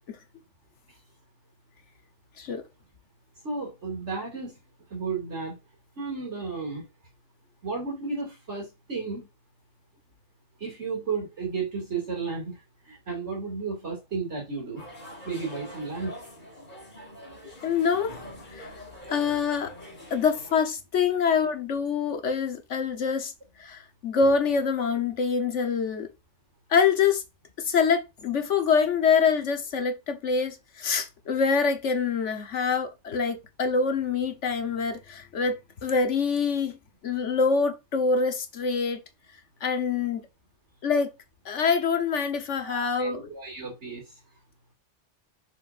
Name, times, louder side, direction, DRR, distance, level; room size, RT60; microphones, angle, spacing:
voice 1, 3.4-4.6 4.9-5.5 6.0-6.8 7.6-9.3 10.6-12.5 12.9-14.8 15.2-16.2 42.6-44.0, right 4 dB, 75° right, 2.8 m, -33 dB
sound 1, 14.8-20.6, left 1 dB, 40° left, 3.2 m, -44 dB
voice 2, 17.6-18.7 19.1-19.7 20.1-23.3 23.6-26.1 26.7-27.2 27.6-36.8 37.0-39.0 39.6-40.3 40.8-41.1 41.4-43.3, left 5 dB, 80° left, 1.4 m, -25 dB
6.4 x 5.8 x 2.6 m
omnidirectional pair, 1.2 m